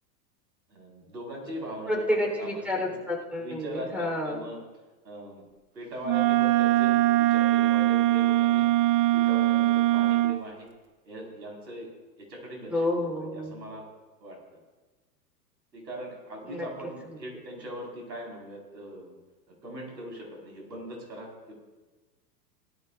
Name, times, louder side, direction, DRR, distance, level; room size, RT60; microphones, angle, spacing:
voice 1, 0.7-3.0 3.4-4.6 5.0-5.4 5.7-8.7 9.1-10.7 11.0-11.9 12.2-13.9 14.2-14.4 15.7-19.2 19.6-21.5, right 1 dB, 85° right, -1 dB, 4.9 m, -40 dB
voice 2, 1.9-4.4 12.7-13.5 16.4-16.7, left 1 dB, 5° right, 0 dB, 3.8 m, -29 dB
Wind instrument woodwind instrument, 6.0-10.4, right 16 dB, 35° right, 0.5 m, -22 dB
18.0 x 13.0 x 2.6 m, 1.2 s
hypercardioid pair, 105°, 50 cm